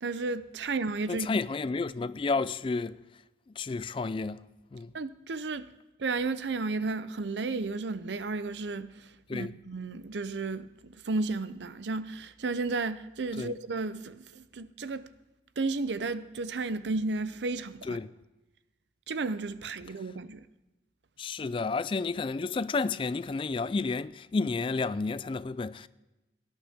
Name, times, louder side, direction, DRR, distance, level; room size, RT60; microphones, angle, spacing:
voice 1, 0.0-1.3 4.9-5.7 6.0-8.9 9.3-15.1 15.6-18.0 19.1-20.4, right 3 dB, 85° right, 0.6 m, -33 dB
voice 2, 1.1-3.0 3.6-4.4 4.7-4.9 9.3-9.5 13.3-13.5 17.8-18.1 21.2-25.9, left 4 dB, 30° left, 0.3 m, -31 dB
17.5 x 11.5 x 3.5 m
head